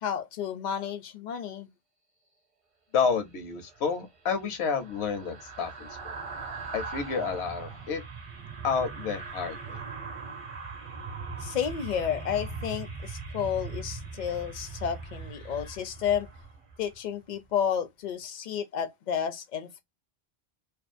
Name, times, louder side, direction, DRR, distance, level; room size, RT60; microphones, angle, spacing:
voice 1, 0.0-1.7 11.4-16.3 16.8-19.8, left 8 dB, 55° left, 0.5 m, -31 dB
voice 2, 2.9-6.2 6.7-8.0 8.6-9.8, left 6 dB, 80° left, 0.9 m, -30 dB
sound 1, 3.6-17.0 17.3-17.5, right 4 dB, 35° right, 0.7 m, -40 dB
2.5 x 2.3 x 2.4 m
omnidirectional pair, 1.1 m